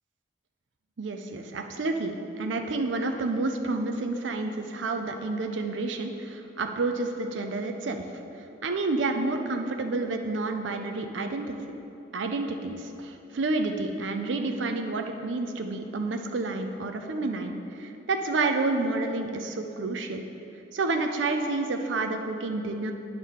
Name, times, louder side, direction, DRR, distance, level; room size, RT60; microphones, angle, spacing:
voice 1, 1.0-8.0 8.6-11.6 12.1-20.2 20.7-22.9, right 3 dB, 90° right, 5 dB, 0.5 m, -29 dB
9.3 x 3.7 x 6.5 m, 2.8 s
head